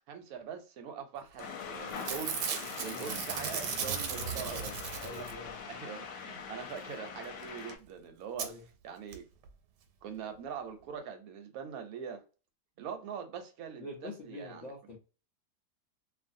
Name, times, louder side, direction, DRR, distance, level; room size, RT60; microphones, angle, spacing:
voice 1, 0.1-2.4 2.8-4.6 5.1-5.3 5.7-8.5 8.8-9.2 10.0-12.2 12.8-14.7, right 7 dB, 70° right, 1.0 m, -43 dB
sound 1, 1.4-7.8, left 6 dB, 90° left, 1.2 m, -43 dB
Packing tape duct tape / Tearing, 1.4-1.6 1.9-5.5 7.4-7.5 7.7-7.8 8.4-8.5 9.1-9.2 9.4-9.5, right 7 dB, 90° right, 1.2 m, -36 dB
voice 2, 4.1-5.6 8.4-8.6 13.8-15.0, left 2 dB, 55° left, 0.9 m, -45 dB
2.5 x 2.5 x 2.5 m
omnidirectional pair, 1.8 m